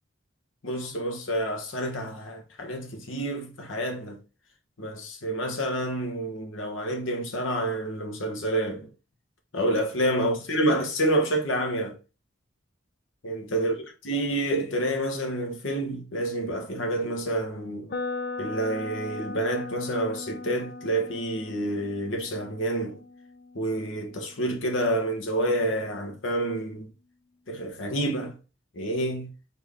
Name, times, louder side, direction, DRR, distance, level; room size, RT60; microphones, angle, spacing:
voice 1, 0.6-4.2 4.8-8.9 9.5-12.0 13.2-13.8 14.0-17.9 18.4-23.0 23.5-26.9 27.5-28.4 28.7-29.3, right 1 dB, 80° left, 1.2 m, -28 dB
sound 1, 17.9-25.8, left 3 dB, 50° left, 0.6 m, -39 dB
4.3 x 3.4 x 3.5 m
head